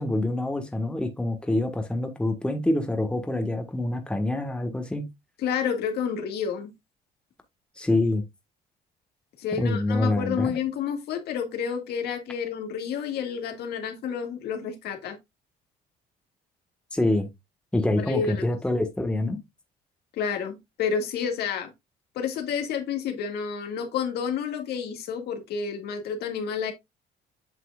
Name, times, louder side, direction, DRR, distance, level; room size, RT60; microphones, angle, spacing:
voice 1, 0.0-5.1 7.8-8.2 9.6-10.5 16.9-17.3 17.7-19.4, left 1 dB, 5° left, 1.4 m, -26 dB
voice 2, 5.4-6.7 9.4-15.2 18.0-18.4 20.1-21.7 22.2-26.7, left 7 dB, 75° left, 2.0 m, -30 dB
8.3 x 5.9 x 2.4 m
cardioid pair, 110°, 17 cm